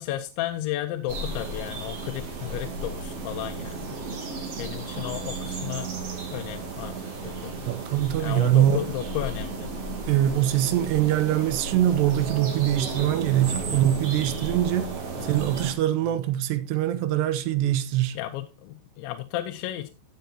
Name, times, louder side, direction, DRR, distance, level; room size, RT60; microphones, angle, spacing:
voice 1, 0.0-4.0 4.6-5.9 6.3-7.6 8.2-9.7 13.7-13.9 15.2-15.4 16.0-16.1 18.1-19.9, left 13 dB, 80° left, 3.0 m, -33 dB
sound 1, 1.1-15.7, right 3 dB, 40° right, 2.6 m, -34 dB
voice 2, 7.7-8.8 10.1-14.9 15.2-18.2, right 12 dB, 75° right, 2.8 m, -23 dB
14.5 x 8.2 x 2.9 m
omnidirectional pair, 5.4 m